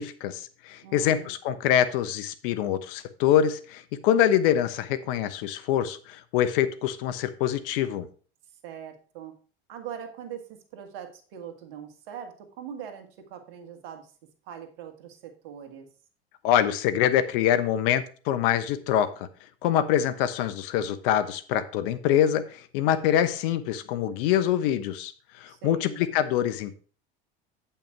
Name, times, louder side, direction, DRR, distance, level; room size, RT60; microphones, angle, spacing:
voice 1, 0.0-8.1 16.4-19.3 19.6-25.1 25.4-26.8, left 10 dB, 65° left, 13 dB, 1.0 m, -25 dB
voice 2, 0.8-1.3 8.6-9.3 9.7-14.1 14.4-15.9 25.5-26.0, right 8 dB, 70° right, 6 dB, 1.9 m, -41 dB
8.8 x 5.7 x 4.7 m, 0.40 s
hypercardioid pair, 90°, 30 cm